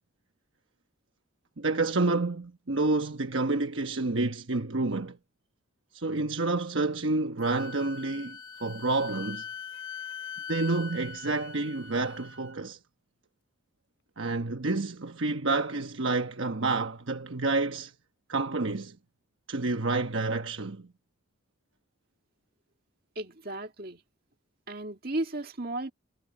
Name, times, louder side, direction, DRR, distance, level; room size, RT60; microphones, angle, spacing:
voice 1, 1.6-5.2 5.9-9.5 10.5-12.8 14.2-17.9 18.3-19.0 19.5-20.9, right 3 dB, 70° right, 1.1 m, -29 dB
Wind instrument woodwind instrument, 7.4-12.6, left 6 dB, 80° left, 2.6 m, -42 dB
voice 2, 23.2-24.0 24.7-25.9, right 1 dB, 45° right, 2.1 m, -34 dB
head